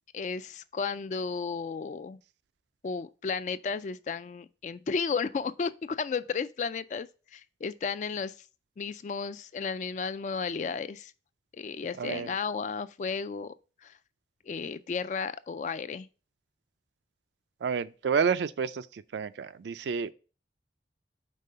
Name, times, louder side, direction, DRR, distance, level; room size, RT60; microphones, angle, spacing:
voice 1, 0.1-2.2 2.8-8.3 8.8-11.1 11.5-13.5 13.8-13.9 14.5-16.1, left 5 dB, 40° left, 0.3 m, -33 dB
voice 2, 12.0-12.3 17.6-20.1, right 6 dB, 80° right, 0.4 m, -30 dB
5.4 x 3.7 x 5.4 m
head